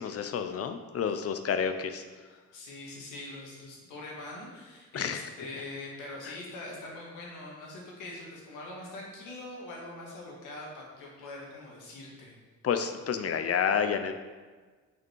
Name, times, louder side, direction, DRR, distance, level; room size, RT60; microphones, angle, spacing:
voice 1, 0.0-2.0 4.9-5.3 6.2-6.4 12.6-14.1, left 7 dB, 50° left, 9 dB, 0.7 m, -30 dB
voice 2, 2.5-12.4, left 2 dB, 90° left, -3 dB, 2.1 m, -43 dB
6.2 x 5.8 x 4.6 m, 1.4 s
cardioid pair, 90°, 30 cm